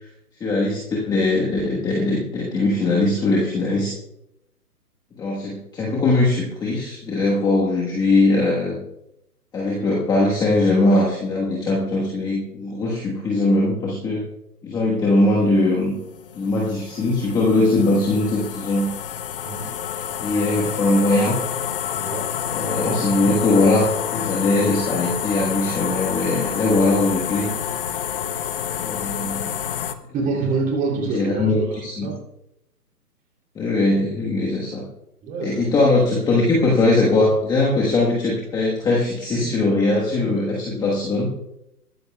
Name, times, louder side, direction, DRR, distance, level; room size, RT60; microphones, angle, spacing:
voice 1, 0.4-3.9 5.2-8.8 9.5-14.2 14.6-16.0 16.3-18.9 20.2-21.4 22.5-27.5 28.8-29.5 31.1-32.1 33.5-34.8 35.4-41.3, left 2 dB, 10° left, -3 dB, 1.2 m, -20 dB
voice 2, 9.8-10.3 19.4-19.7 21.9-22.3 30.1-32.2 35.2-35.7, right 4 dB, 15° right, 0 dB, 2.8 m, -27 dB
sound 1, 15.5-29.9, left 9 dB, 35° left, 0.8 m, -28 dB
22.0 x 13.0 x 2.3 m, 0.82 s
hypercardioid pair, 145°, 47 cm